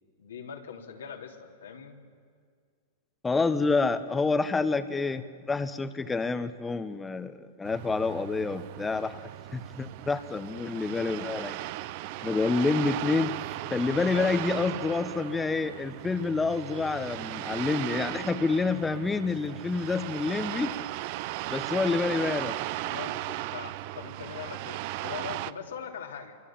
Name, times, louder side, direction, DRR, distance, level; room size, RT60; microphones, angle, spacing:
voice 1, 0.2-2.0 14.1-14.7 22.8-26.4, left 7 dB, 85° left, 1 dB, 3.0 m, -41 dB
voice 2, 3.2-9.2 9.5-11.5 12.2-13.3 13.7-20.7 21.5-22.6, left 4 dB, 15° left, 11 dB, 1.2 m, -28 dB
sound 1, 7.6-25.5, right 16 dB, 55° right, 0.7 m, -37 dB
27.0 x 24.0 x 7.5 m, 2.1 s
hypercardioid pair, 115°, 0 cm